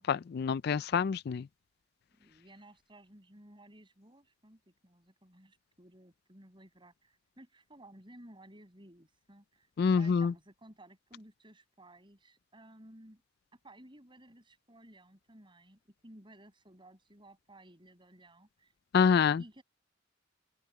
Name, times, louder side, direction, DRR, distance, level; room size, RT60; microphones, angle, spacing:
voice 1, 0.1-1.4 9.8-10.3 18.9-19.4, left 6 dB, 55° left, 0.3 m, -26 dB
voice 2, 2.2-13.2 13.5-18.7 19.4-19.6, right 1 dB, 25° right, 7.2 m, -56 dB
open air
head